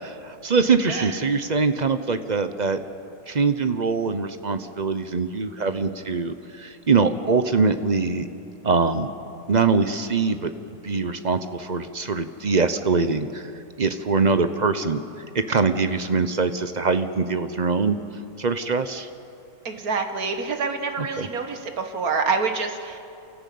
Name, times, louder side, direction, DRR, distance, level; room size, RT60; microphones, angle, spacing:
voice 1, 0.0-2.8 3.3-8.3 8.6-9.1 9.5-10.5 10.8-13.5 13.8-18.0 18.4-19.1 21.0-21.3, right 4 dB, 40° right, 10 dB, 0.6 m, -23 dB
voice 2, 19.7-23.0, right 4 dB, 60° right, 6 dB, 1.9 m, -27 dB
29.0 x 14.0 x 8.5 m, 2.6 s
omnidirectional pair, 1.8 m